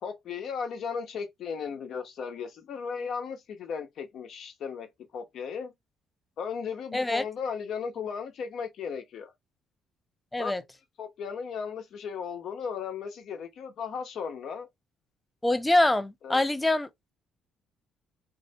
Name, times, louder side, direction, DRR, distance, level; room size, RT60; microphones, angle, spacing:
voice 1, 0.0-4.9 5.1-5.7 6.4-9.3 10.4-10.5 11.0-14.7 16.2-16.4, left 6 dB, 65° left, 0.8 m, -36 dB
voice 2, 6.9-7.2 10.3-10.6 15.4-17.1, left 1 dB, 15° left, 0.5 m, -25 dB
2.7 x 2.0 x 2.7 m
hypercardioid pair, 55°, 0 cm